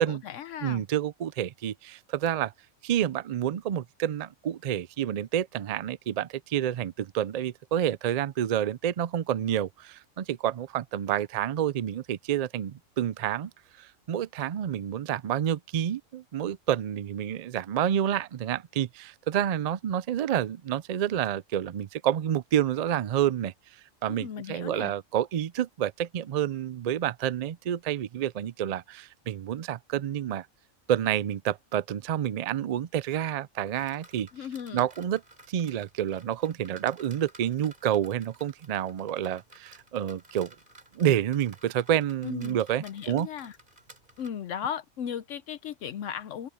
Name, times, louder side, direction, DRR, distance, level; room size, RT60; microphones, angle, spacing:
voice 1, 0.0-0.8 24.1-24.9 34.3-34.9 42.2-43.6 44.2-46.5, left 8 dB, 75° left, 1.0 m, -36 dB
voice 2, 0.6-2.5 2.8-13.5 13.8-23.5 24.0-30.5 30.9-34.3 34.7-35.2 35.5-40.5 40.9-43.3, right 10 dB, 85° right, 0.3 m, -29 dB
sound 1, 33.7-44.3, right 1 dB, 40° right, 4.0 m, -55 dB
open air
omnidirectional pair, 1.3 m